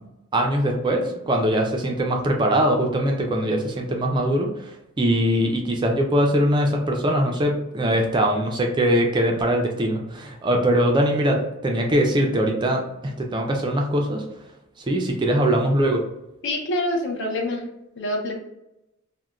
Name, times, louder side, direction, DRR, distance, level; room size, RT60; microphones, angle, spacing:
voice 1, 0.3-4.7 5.0-14.2 14.9-16.1, right 1 dB, 20° right, 1 dB, 0.3 m, -22 dB
voice 2, 16.4-17.6 18.0-18.4, left 1 dB, 55° left, 1 dB, 0.6 m, -26 dB
2.4 x 2.1 x 3.0 m, 0.89 s
head